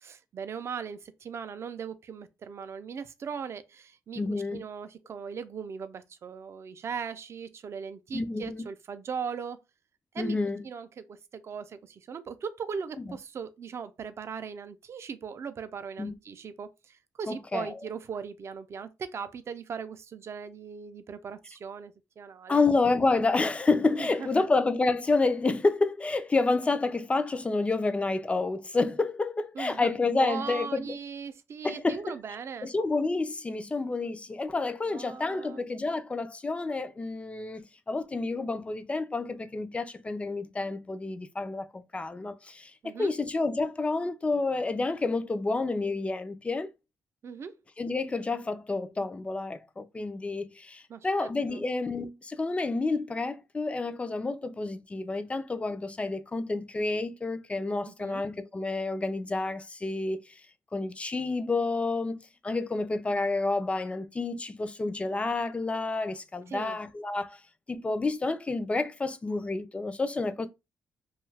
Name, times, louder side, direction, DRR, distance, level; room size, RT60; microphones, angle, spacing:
voice 1, 0.0-9.6 10.1-10.4 10.6-22.7 24.0-24.5 29.6-32.7 34.8-35.6 42.8-43.1 47.2-47.5 50.9-51.7 57.9-58.2 66.5-66.8, right 6 dB, 45° right, 0.4 m, -39 dB
voice 2, 4.2-4.6 8.1-8.6 10.2-10.7 16.0-16.1 17.3-17.7 22.5-31.0 31.6-32.2 32.6-42.7 43.0-46.7 47.8-60.3 60.7-67.4 67.7-70.5, left 3 dB, 20° left, 0.3 m, -29 dB
2.6 x 2.3 x 3.2 m
cardioid pair, 110°, 6 cm